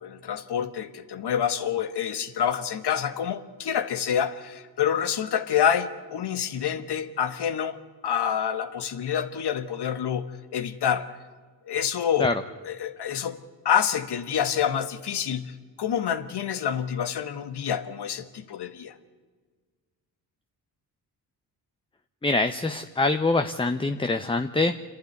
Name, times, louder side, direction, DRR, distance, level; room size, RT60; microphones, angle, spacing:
voice 1, 0.0-7.8 8.0-11.1 11.7-12.3 12.6-13.4 13.6-18.9, left 8 dB, 70° left, 10 dB, 1.6 m, -27 dB
voice 2, 22.2-24.8, left 2 dB, 15° left, 8 dB, 0.8 m, -24 dB
27.5 x 11.0 x 9.6 m, 1.5 s
cardioid pair, 65°, 42 cm